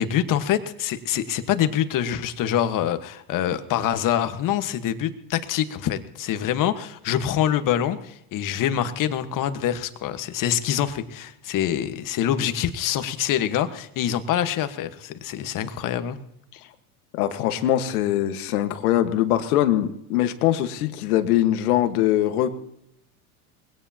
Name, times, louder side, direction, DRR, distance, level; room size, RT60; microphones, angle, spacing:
voice 1, 0.0-16.2, left 10 dB, 45° left, 10 dB, 1.5 m, -25 dB
voice 2, 17.1-22.5, left 12 dB, 80° left, 9 dB, 1.6 m, -22 dB
21.5 x 17.0 x 2.9 m, 0.75 s
hypercardioid pair, 100°, 44 cm